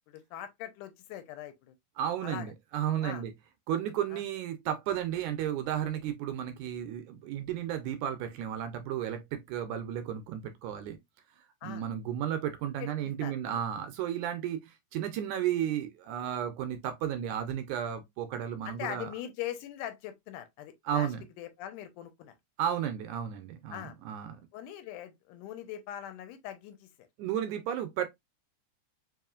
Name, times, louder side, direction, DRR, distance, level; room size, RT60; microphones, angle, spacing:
voice 1, 0.1-1.7 2.2-2.5 3.0-3.2 4.1-4.2 11.6-11.8 12.8-13.4 18.7-21.1 21.4-22.4 23.7-24.0 24.5-26.9, left 11 dB, 80° left, 2.1 m, -41 dB
voice 2, 2.0-3.3 3.7-11.0 11.6-19.1 20.9-21.3 22.6-24.4 27.2-28.1, right 10 dB, 80° right, 1.8 m, -33 dB
4.8 x 2.9 x 2.4 m
omnidirectional pair, 3.7 m